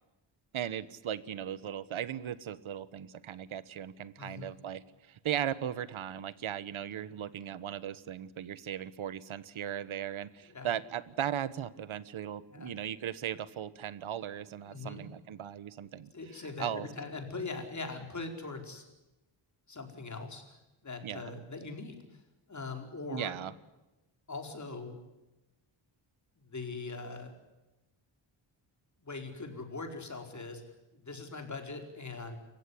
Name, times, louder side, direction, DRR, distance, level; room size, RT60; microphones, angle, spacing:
voice 1, 0.5-16.9 21.0-21.4 23.1-23.5, right 10 dB, 75° right, 16 dB, 1.3 m, -37 dB
voice 2, 4.2-4.6 10.5-10.7 12.5-12.7 14.7-15.1 15.8-18.8 19.7-22.2 22.5-23.4 24.3-25.0 26.4-27.3 29.0-30.6 30.9-32.4, left 3 dB, 35° left, 4 dB, 4.6 m, -41 dB
28.5 x 15.5 x 9.9 m, 1.0 s
wide cardioid pair, 115°, 48 cm